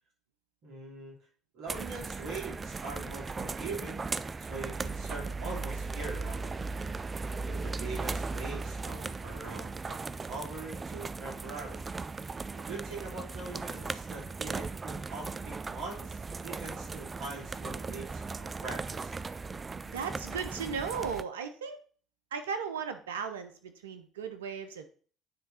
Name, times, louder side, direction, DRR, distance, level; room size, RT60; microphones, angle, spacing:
voice 1, 0.6-1.1 1.5-6.5 7.4-11.8 12.5-19.2, right 3 dB, 65° right, -2 dB, 3.1 m, -42 dB
sound 1, 1.7-21.2, right 4 dB, 30° right, 0.4 m, -37 dB
voice 2, 19.9-21.8 22.3-24.8, right 6 dB, 90° right, 9 dB, 0.7 m, -36 dB
9.4 x 3.4 x 4.2 m, 0.42 s
hypercardioid pair, 60°, 0 cm